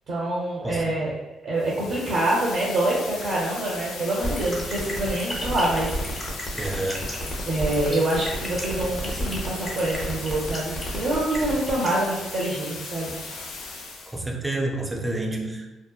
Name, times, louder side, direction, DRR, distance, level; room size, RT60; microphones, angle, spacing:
voice 1, 0.1-1.1 1.4-5.9 7.5-13.2, right 1 dB, 65° right, -5 dB, 0.6 m, -26 dB
voice 2, 0.6-1.0 6.6-7.1 14.1-15.7, right 2 dB, 15° right, 0 dB, 0.4 m, -29 dB
sound 1, 1.6-14.2, left 3 dB, 85° left, 0.4 m, -37 dB
sound 2, 4.2-11.9, left 1 dB, 30° left, 0.7 m, -33 dB
2.7 x 2.1 x 2.3 m, 1.0 s
cardioid pair, 90°, 0 cm